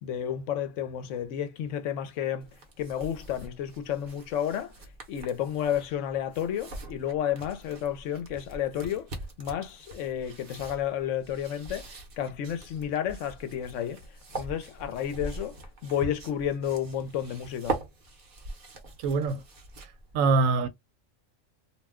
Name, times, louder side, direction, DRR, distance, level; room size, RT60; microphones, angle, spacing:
voice 1, 0.0-2.5 2.8-4.7 5.1-9.1 9.4-14.0 14.3-17.8, left 9 dB, 75° left, 0.9 m, -31 dB
sound 1, 2.4-20.1, right 2 dB, 45° right, 0.8 m, -42 dB
voice 2, 19.0-19.4 19.8-19.9 20.1-20.7, right 4 dB, 85° right, 1.0 m, -24 dB
2.5 x 2.1 x 3.4 m
omnidirectional pair, 1.4 m